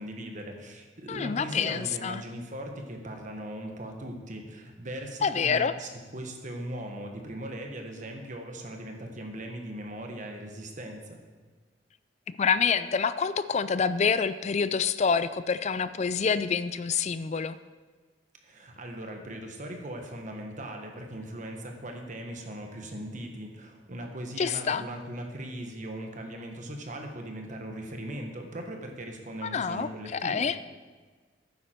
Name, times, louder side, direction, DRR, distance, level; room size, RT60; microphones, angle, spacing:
voice 1, 0.0-11.2 18.4-30.4, right 1 dB, 40° right, 3 dB, 1.4 m, -39 dB
voice 2, 1.1-2.2 5.2-5.7 12.3-17.6 24.4-24.9 29.4-30.6, left 6 dB, 35° left, 14 dB, 0.4 m, -27 dB
12.0 x 9.5 x 4.5 m, 1.4 s
head